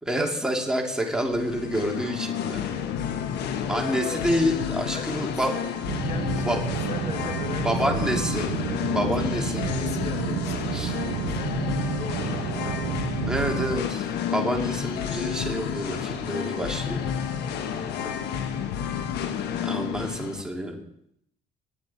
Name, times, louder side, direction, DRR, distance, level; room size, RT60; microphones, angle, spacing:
voice 1, 0.0-2.6 3.7-5.5 6.4-6.6 7.6-8.5 8.9-9.6 10.7-10.9 13.3-17.1 19.6-20.8, equal, 5° right, 0 dB, 2.6 m, -28 dB
Singing, 1.3-20.4, left 8 dB, 75° left, 1.4 m, -30 dB
voice 2, 3.7-4.2 4.9-5.7 6.0-8.2 8.6-11.6 11.9-13.1 17.4-18.9, left 4 dB, 40° left, 4 dB, 2.1 m, -40 dB
sound 1, 5.9-13.8, right 14 dB, 60° right, 0.4 m, -31 dB
19.0 x 9.7 x 4.2 m, 0.75 s
cardioid pair, 110°, 17 cm